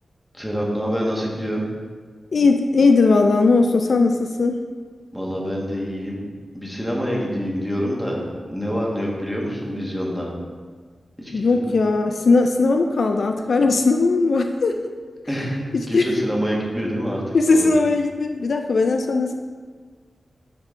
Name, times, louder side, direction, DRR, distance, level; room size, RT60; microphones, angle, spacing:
voice 1, 0.3-1.6 5.1-6.2 6.5-10.3 11.2-11.7 15.3-17.7, equal, 5° left, -3 dB, 1.4 m, -26 dB
voice 2, 2.3-4.6 11.3-14.7 15.7-16.1 17.3-19.3, left 3 dB, 65° left, 5 dB, 0.3 m, -18 dB
9.8 x 3.7 x 3.6 m, 1.6 s
wide cardioid pair, 115°, 0 cm